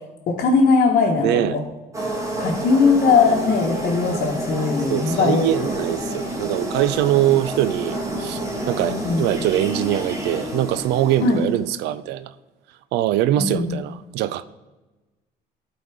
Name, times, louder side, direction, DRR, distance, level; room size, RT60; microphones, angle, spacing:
voice 1, 0.3-1.6 2.4-5.7 8.8-9.2 11.2-11.4 13.4-13.8, left 4 dB, 55° left, 1.1 m, -19 dB
voice 2, 1.2-1.6 4.9-8.4 8.7-12.3 12.9-14.4, right 13 dB, 85° right, 0.4 m, -22 dB
sound 1, 1.9-11.7, right 1 dB, 20° right, 1.5 m, -29 dB
11.5 x 4.0 x 4.8 m
cardioid pair, 110°, 17 cm